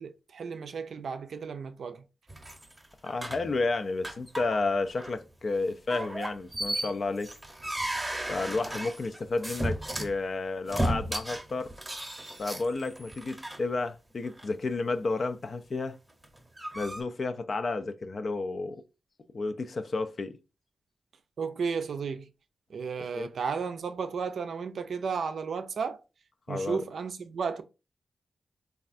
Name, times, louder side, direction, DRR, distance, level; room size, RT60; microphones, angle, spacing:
voice 1, 0.0-2.0 21.4-22.3 22.7-26.0 26.5-27.6, right 5 dB, 75° right, 0.4 m, -33 dB
sound 1, 2.3-3.5 4.0-4.6 4.9-5.2 5.9-10.1 10.7-13.6 14.3-14.5 16.1-17.0, right 1 dB, 15° right, 0.8 m, -35 dB
voice 2, 3.0-7.3 8.3-11.7 12.4-16.0 16.7-18.8 19.3-20.4 23.0-23.3 26.5-26.8, left 3 dB, 60° left, 0.4 m, -31 dB
3.2 x 2.3 x 2.5 m
cardioid pair, 50°, 0 cm